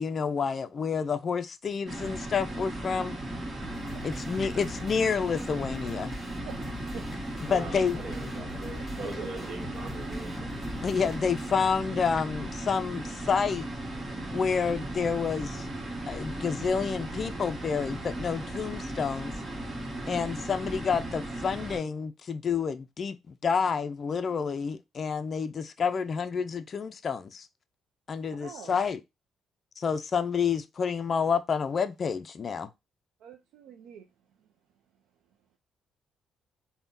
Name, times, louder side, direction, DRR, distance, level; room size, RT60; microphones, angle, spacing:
voice 1, 0.0-3.2 4.0-6.2 7.4-8.0 10.8-13.7 14.3-15.7 16.1-19.3 20.1-27.5 28.1-29.0 29.8-32.7, left 6 dB, 45° left, 0.3 m, -29 dB
sound 1, 1.9-21.8, right 1 dB, 35° right, 1.1 m, -37 dB
sound 2, 3.6-11.6, left 2 dB, 20° left, 1.1 m, -44 dB
voice 2, 7.5-10.6, right 2 dB, 65° right, 1.0 m, -41 dB
voice 3, 28.4-28.8 33.2-34.1 34.4-34.5, right 8 dB, 85° right, 0.4 m, -45 dB
3.5 x 2.1 x 2.5 m
cardioid pair, 90°, 0 cm